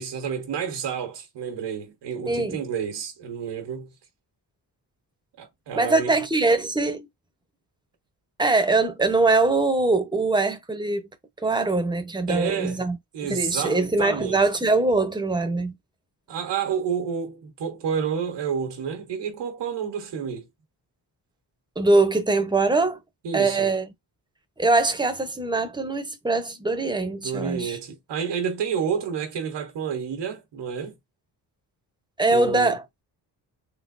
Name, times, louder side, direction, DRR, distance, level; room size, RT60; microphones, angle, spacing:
voice 1, 0.0-3.9 5.4-6.1 12.3-12.8 13.1-14.4 16.3-20.5 23.2-23.7 27.2-31.0 32.3-32.8, right 7 dB, 90° right, 1.3 m, -29 dB
voice 2, 2.3-2.6 5.7-7.1 8.4-11.0 11.4-13.0 13.2-15.8 21.8-23.0 23.3-23.9 24.6-27.8 32.2-32.8, right 3 dB, 10° right, 0.9 m, -22 dB
3.8 x 3.2 x 2.6 m
cardioid pair, 105°, 41 cm